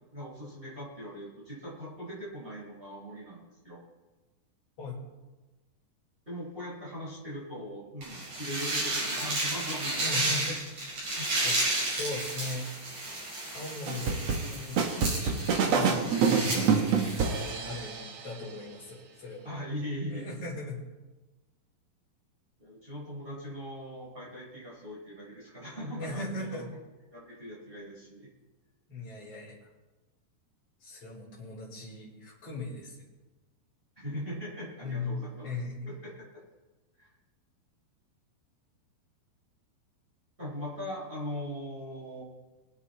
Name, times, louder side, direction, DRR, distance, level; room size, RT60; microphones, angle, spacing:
voice 1, 0.1-3.8 6.3-10.4 11.1-11.3 19.4-20.3 22.6-26.6 27.1-28.3 34.0-35.5 36.0-36.1 37.0-37.1 40.4-42.2, equal, 15° right, -6 dB, 4.6 m, -40 dB
sound 1, 8.0-17.5, right 2 dB, 40° right, 6.1 m, -32 dB
voice 2, 10.0-10.6 11.0-12.7 13.5-16.7 17.4-19.5 20.1-20.8 26.0-26.7 28.9-29.5 30.8-33.0 34.8-35.9, left 2 dB, 35° left, -5 dB, 5.3 m, -39 dB
sound 2, 13.9-18.2, right 6 dB, 60° right, 1.7 m, -27 dB
24.0 x 8.2 x 4.3 m, 1.2 s
omnidirectional pair, 4.6 m